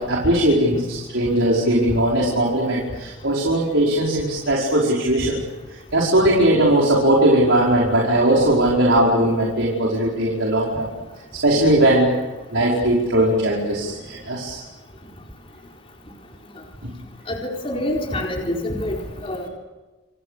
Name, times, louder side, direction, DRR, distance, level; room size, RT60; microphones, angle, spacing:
voice 1, 0.0-5.4 5.9-10.9 11.4-12.1 12.5-14.6 16.8-17.0, right 1 dB, 85° right, -4 dB, 5.2 m, -19 dB
voice 2, 17.3-19.0 19.2-19.5, left 1 dB, 30° left, 0 dB, 4.3 m, -26 dB
29.0 x 26.0 x 6.8 m, 1.2 s
head